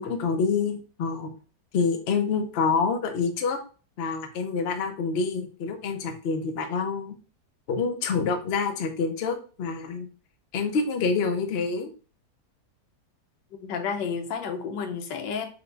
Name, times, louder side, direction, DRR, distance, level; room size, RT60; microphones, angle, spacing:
voice 1, 0.0-1.3 1.7-3.6 4.0-7.1 7.7-10.1 10.5-11.9, left 5 dB, 65° left, 5 dB, 0.6 m, -27 dB
voice 2, 13.6-15.5, left 6 dB, 85° left, 6 dB, 1.4 m, -31 dB
4.6 x 2.2 x 3.9 m, 0.37 s
omnidirectional pair, 1.9 m